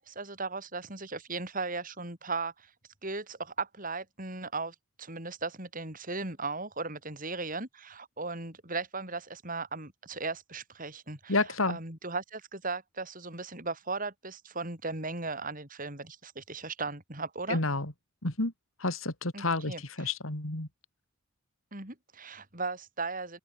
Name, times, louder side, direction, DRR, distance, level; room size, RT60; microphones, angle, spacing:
voice 1, 0.0-2.7 3.0-11.3 11.7-17.6 19.3-19.8 21.7-23.4, right 3 dB, 40° right, 7.8 m, -37 dB
voice 2, 11.3-11.8 17.5-17.9 18.2-18.5 18.8-20.7, left 2 dB, 75° left, 3.5 m, -30 dB
open air
head